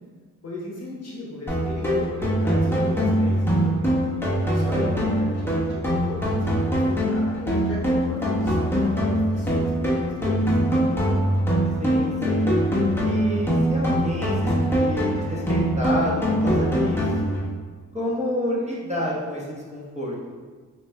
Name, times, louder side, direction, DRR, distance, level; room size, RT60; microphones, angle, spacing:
voice 1, 0.4-4.0 4.5-11.4, left 1 dB, 45° left, -4 dB, 0.9 m, -37 dB
sound 1, 1.5-17.5, equal, 5° left, 1.1 m, -23 dB
voice 2, 4.7-5.1 11.8-12.5 13.0-17.4 17.9-20.1, equal, 20° right, -6 dB, 1.1 m, -30 dB
5.2 x 2.7 x 2.2 m, 1.5 s
cardioid pair, 60°, 37 cm